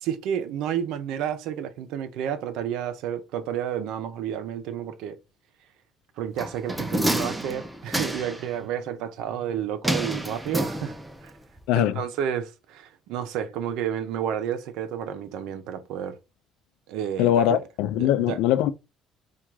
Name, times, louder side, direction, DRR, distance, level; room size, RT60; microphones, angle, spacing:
voice 1, 0.0-5.2 6.2-10.9 11.2-11.3 11.8-16.2 16.9-17.7 18.0-18.4, right 9 dB, 70° right, 0.7 m, -31 dB
sound 1, 6.4-8.5 9.8-11.3 11.6-11.7, right 1 dB, 5° right, 0.4 m, -28 dB
voice 2, 11.7-12.0 17.2-18.7, left 12 dB, 85° left, 0.4 m, -22 dB
3.6 x 2.4 x 4.6 m
cardioid pair, 180°, 0 cm